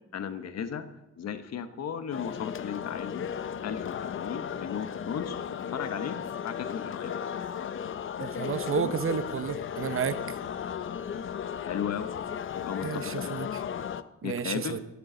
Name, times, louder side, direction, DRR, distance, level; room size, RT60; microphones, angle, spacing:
voice 1, 0.1-0.9 1.2-3.3 3.6-5.4 5.7-6.2 6.4-7.1 11.6-12.1 12.5-13.3 14.2-14.8, left 8 dB, 60° left, 10 dB, 1.2 m, -35 dB
sound 1, 2.1-14.0, left 8 dB, 45° left, 0.6 m, -35 dB
voice 2, 8.2-10.4 12.8-13.6 14.2-14.8, right 7 dB, 45° right, 13 dB, 0.8 m, -31 dB
18.0 x 12.0 x 3.9 m, 0.98 s
cardioid pair, 90°, 30 cm